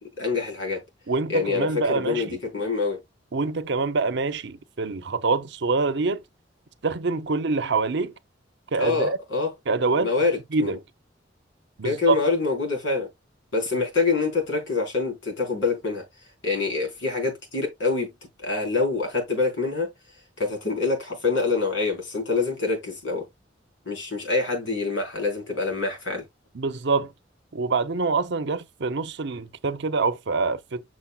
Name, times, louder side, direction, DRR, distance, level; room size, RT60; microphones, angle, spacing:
voice 1, 0.2-0.8 1.3-3.0 8.7-9.5 10.0-10.8 11.8-13.1 13.5-16.0 16.4-18.1 18.4-19.9 20.4-23.3 23.9-26.2, left 3 dB, 90° left, 4.0 m, -25 dB
voice 2, 1.1-2.4 3.3-6.2 6.8-8.1 8.7-9.2 9.7-10.1 10.5-10.8 11.8-12.2 26.5-27.1 27.5-30.8, right 4 dB, 65° right, 0.7 m, -25 dB
7.4 x 6.2 x 2.3 m
head